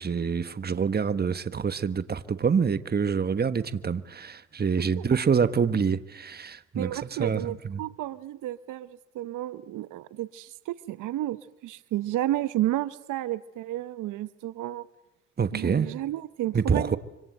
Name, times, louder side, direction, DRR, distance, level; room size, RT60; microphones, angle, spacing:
voice 1, 0.0-7.8 15.4-15.9 16.5-17.0, right 6 dB, 30° right, 1.3 m, -26 dB
voice 2, 6.7-14.9 15.5-17.0, right 14 dB, 90° right, 0.9 m, -32 dB
25.5 x 25.0 x 8.0 m
cardioid pair, 90°, 30 cm